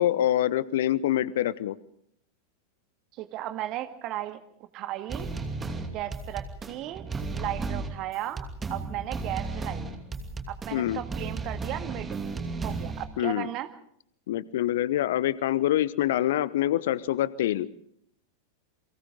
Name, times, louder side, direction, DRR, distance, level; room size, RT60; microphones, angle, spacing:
voice 1, 0.0-1.8 10.7-11.0 13.2-13.5 14.3-17.7, left 12 dB, 55° left, 20 dB, 0.8 m, -25 dB
voice 2, 3.1-5.3 5.9-7.1 7.3-9.9 10.5-12.2 12.6-13.7, right 13 dB, 40° right, 9 dB, 2.1 m, -35 dB
sound 1, 5.1-13.1, right 3 dB, 15° right, 2.8 m, -34 dB
29.5 x 23.5 x 3.8 m, 0.68 s
figure-of-eight pair, 90°, 0 cm